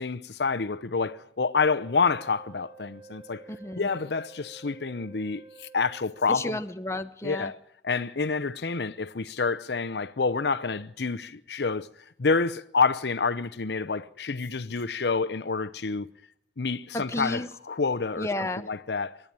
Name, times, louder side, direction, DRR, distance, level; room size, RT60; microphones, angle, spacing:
voice 1, 0.0-3.4 3.8-6.6 7.2-7.6 7.8-11.9 12.2-16.1 16.6-18.3 18.7-19.3, left 4 dB, 75° left, 0.8 m, -28 dB
Wind instrument woodwind instrument, 1.7-6.4, right 4 dB, 30° right, 5.3 m, -51 dB
voice 2, 3.5-3.9 6.3-7.5 16.9-17.5 18.2-18.7, left 1 dB, 15° left, 0.8 m, -32 dB
26.5 x 11.0 x 9.0 m
head